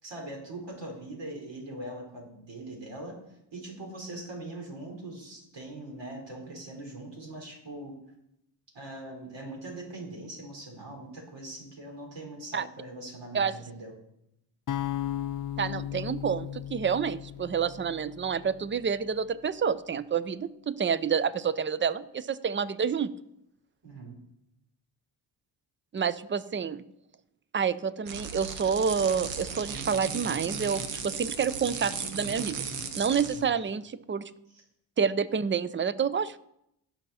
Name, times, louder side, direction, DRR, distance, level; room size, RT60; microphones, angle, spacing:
voice 1, 0.0-3.2 3.5-8.0 8.7-13.9 23.8-24.2 33.2-33.4 34.5-34.6, right 1 dB, 60° right, 1 dB, 4.2 m, -41 dB
sound 1, 14.7-18.8, left 11 dB, 40° left, 0.6 m, -36 dB
voice 2, 15.6-23.1 25.9-26.8 27.5-32.7 33.0-34.3 35.0-36.4, right 6 dB, 25° right, 17 dB, 0.6 m, -28 dB
sound 2, 28.1-33.4, right 6 dB, 90° right, 1.2 m, -36 dB
17.0 x 5.7 x 4.2 m, 0.79 s
supercardioid pair, 50°, 49 cm